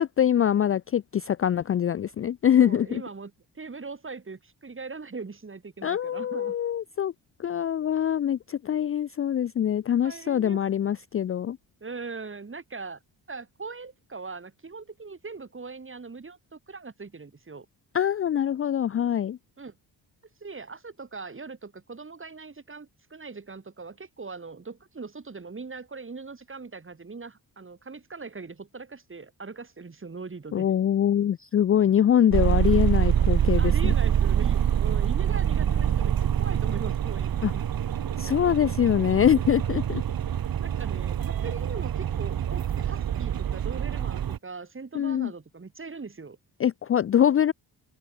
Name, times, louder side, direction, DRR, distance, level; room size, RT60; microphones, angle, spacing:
voice 1, 0.0-3.0 5.8-7.1 7.4-11.6 17.9-19.4 30.5-33.9 37.4-37.5 38.2-40.0 44.9-45.3 46.6-47.5, left 9 dB, 35° left, 0.4 m, -24 dB
voice 2, 2.6-6.5 10.0-10.6 11.8-13.0 13.3-17.7 19.6-19.8 20.4-30.7 33.6-37.6 40.6-46.4, right 4 dB, 30° right, 7.6 m, -40 dB
sound 1, 32.3-44.4, right 9 dB, 55° right, 1.5 m, -25 dB
cardioid pair, 100°, 41 cm